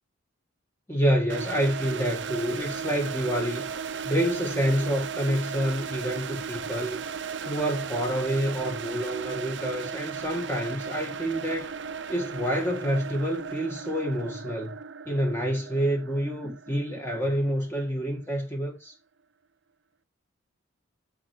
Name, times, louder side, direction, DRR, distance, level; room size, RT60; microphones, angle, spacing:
voice 1, 0.9-3.7 4.0-7.0 7.5-11.7 12.1-14.8 15.1-18.9, equal, 10° left, 1.8 m, -28 dB
sound 1, 1.3-18.1, right 6 dB, 60° right, 0.7 m, -36 dB
13.5 x 4.5 x 4.6 m
head